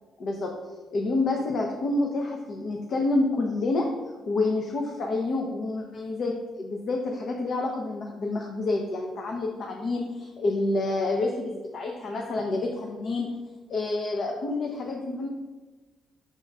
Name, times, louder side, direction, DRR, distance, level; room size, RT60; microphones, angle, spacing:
voice 1, 0.2-0.5 0.9-3.9 4.3-13.3 13.7-15.3, left 2 dB, 55° left, 1 dB, 0.8 m, -28 dB
6.4 x 3.8 x 5.3 m, 1.3 s
cardioid pair, 90°, 0 cm